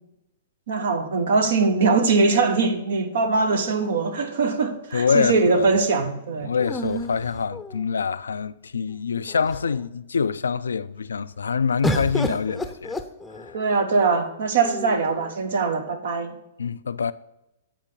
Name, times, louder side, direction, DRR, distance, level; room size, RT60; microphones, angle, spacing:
voice 1, 0.7-6.5 13.5-16.4, right 4 dB, 65° right, 1.1 m, -22 dB
sound 1, 3.5-4.6 6.6-8.1 8.9-9.0 9.3-9.9 11.8-13.7 14.6-15.3, left 1 dB, 5° left, 0.7 m, -31 dB
voice 2, 4.9-5.7 6.4-13.0 13.3-13.6 16.6-17.1, left 5 dB, 80° left, 0.3 m, -25 dB
9.2 x 4.4 x 5.4 m
hypercardioid pair, 115°, 0 cm